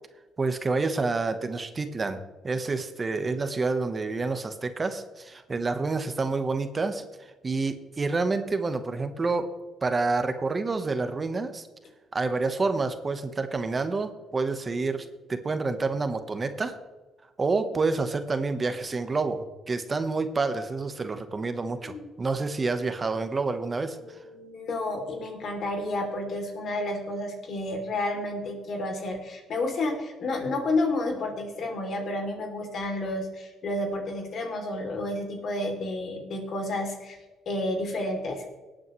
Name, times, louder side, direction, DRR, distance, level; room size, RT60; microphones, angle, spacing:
voice 1, 0.4-2.2 2.4-9.5 9.8-11.7 12.1-16.8 17.4-24.2, right 3 dB, 30° right, 8 dB, 1.2 m, -28 dB
voice 2, 24.0-37.2 37.5-38.5, left 2 dB, 60° left, 3 dB, 3.1 m, -31 dB
18.5 x 8.8 x 3.2 m, 1.2 s
cardioid pair, 80°, 0 cm